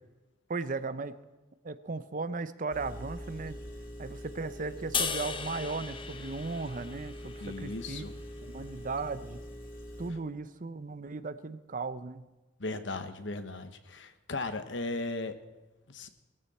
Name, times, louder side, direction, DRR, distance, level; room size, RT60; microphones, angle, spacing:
voice 1, 0.5-1.2 1.6-3.6 4.0-8.1 8.4-9.4 10.0-12.3, right 3 dB, 45° right, 13 dB, 0.7 m, -36 dB
Engine, 2.7-10.1, equal, 50° left, 2.7 m, -44 dB
sound 1, 4.9-8.2, left 6 dB, 25° left, 0.8 m, -37 dB
voice 2, 7.4-8.1 12.6-15.4 15.9-16.1, left 2 dB, 70° left, 9 dB, 1.3 m, -37 dB
20.0 x 14.5 x 4.3 m, 1.1 s
head